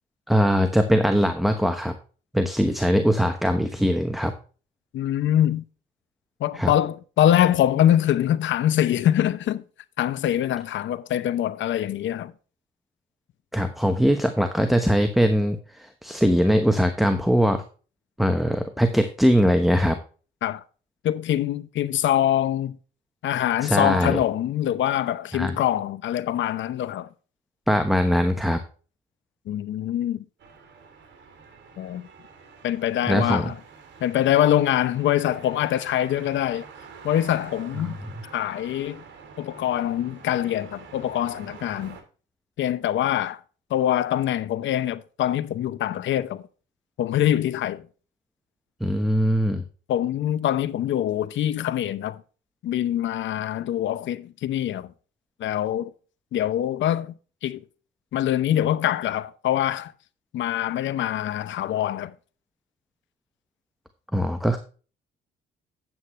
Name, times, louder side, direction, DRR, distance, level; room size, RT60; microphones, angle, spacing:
voice 1, 0.3-1.9 2.3-4.3 6.6-6.7 13.5-17.6 18.2-20.0 23.6-24.2 25.3-25.6 27.7-28.6 33.1-33.5 37.8-37.9 48.8-49.6 64.1-64.6, equal, ahead, 1.0 m, -21 dB
voice 2, 4.9-5.6 6.4-9.6 10.0-12.3 20.4-20.6 21.0-22.8 23.2-27.1 29.5-30.2 31.8-32.0 32.6-33.6 34.0-36.7 37.0-38.0 38.3-39.0 39.4-42.0 42.6-43.4 43.7-46.4 47.0-47.9 49.9-52.2 52.6-54.9 55.4-55.9 56.3-57.6 58.1-59.9 60.3-62.1, left 11 dB, 70° left, 0.7 m, -24 dB
sound 1, 30.4-42.0, right 5 dB, 65° right, 3.1 m, -46 dB
9.3 x 8.8 x 3.1 m
cardioid pair, 90°, 20 cm